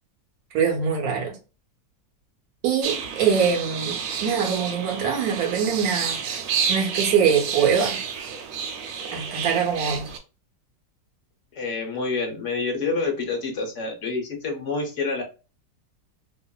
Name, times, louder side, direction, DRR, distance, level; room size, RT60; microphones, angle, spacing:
voice 1, 0.5-1.4 2.6-6.2 6.7-8.0 9.1-10.1, right 7 dB, 65° right, 1.0 m, -23 dB
sound 1, 2.8-10.2, right 6 dB, 90° right, 1.3 m, -30 dB
voice 2, 11.5-15.2, left 4 dB, 60° left, 0.8 m, -27 dB
2.8 x 2.4 x 2.2 m
omnidirectional pair, 1.9 m